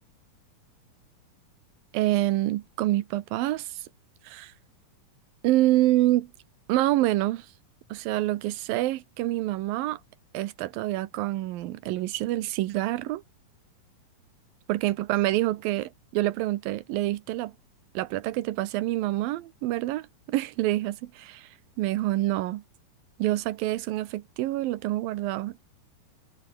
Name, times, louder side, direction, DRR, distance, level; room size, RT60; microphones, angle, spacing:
voice 1, 1.9-3.8 4.2-4.5 5.4-6.3 6.7-7.5 7.9-10.0 10.3-13.2 14.7-17.5 17.9-21.5 21.8-22.6 23.2-25.6, right 16 dB, 90° right, 2.7 m, -27 dB
omnidirectional pair, 4.1 m